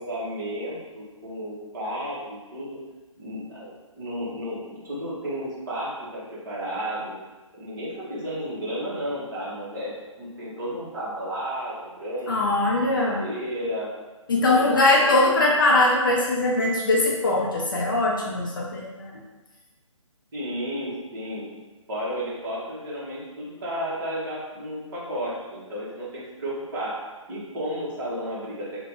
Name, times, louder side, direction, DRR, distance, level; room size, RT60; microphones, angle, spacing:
voice 1, 0.0-2.2 2.5-2.8 3.2-7.1 7.5-9.9 10.2-12.3 13.0-13.9 14.5-15.2 20.3-21.5 21.9-26.9 27.3-28.8, equal, 40° right, -8 dB, 1.1 m, -32 dB
voice 2, 12.3-13.2 14.3-19.1, left 2 dB, 40° left, -3 dB, 0.5 m, -21 dB
2.9 x 2.2 x 3.0 m, 1.2 s
figure-of-eight pair, 140°, 17 cm